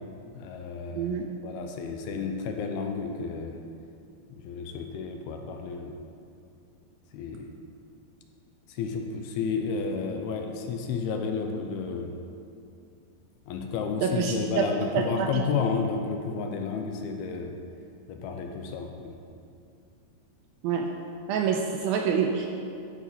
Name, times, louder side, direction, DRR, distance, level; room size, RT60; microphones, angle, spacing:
voice 1, 0.3-1.1 1.4-3.6 4.3-6.0 7.1-7.5 8.7-12.2 13.5-17.5 18.1-19.2, left 5 dB, 80° left, 4 dB, 2.5 m, -31 dB
voice 2, 14.0-14.7 14.9-15.4 20.6-20.9 21.3-22.5, right 7 dB, 85° right, 2 dB, 2.2 m, -27 dB
13.5 x 5.0 x 5.5 m, 2.5 s
omnidirectional pair, 4.7 m